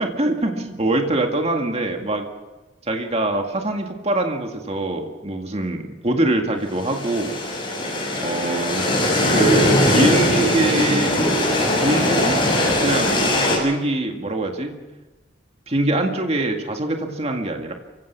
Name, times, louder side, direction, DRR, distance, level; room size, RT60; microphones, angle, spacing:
voice 1, 0.0-2.3 2.8-7.4 8.2-8.9 9.3-11.3 11.8-12.4 12.8-13.2 13.6-14.8 15.7-17.7, right 2 dB, 35° right, 3 dB, 2.0 m, -23 dB
sound 1, 6.7-13.6, left 1 dB, 30° left, 6.6 m, -20 dB
28.0 x 16.5 x 6.0 m, 1.1 s
head